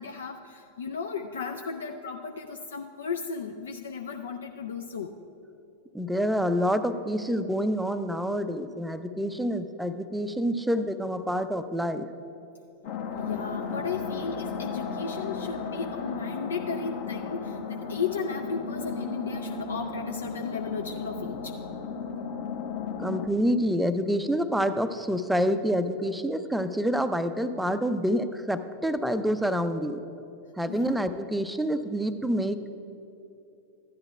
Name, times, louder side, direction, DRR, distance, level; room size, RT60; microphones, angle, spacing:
voice 1, 0.0-5.2 13.1-21.6 30.7-31.0, left 5 dB, 65° left, 4 dB, 0.4 m, -35 dB
voice 2, 5.9-12.1 23.0-30.0 30.6-32.6, equal, 5° right, 10 dB, 0.5 m, -27 dB
sound 1, 12.8-23.3, left 5 dB, 50° left, 0.9 m, -35 dB
14.5 x 10.5 x 2.3 m, 2.8 s
figure-of-eight pair, 90°, 0 cm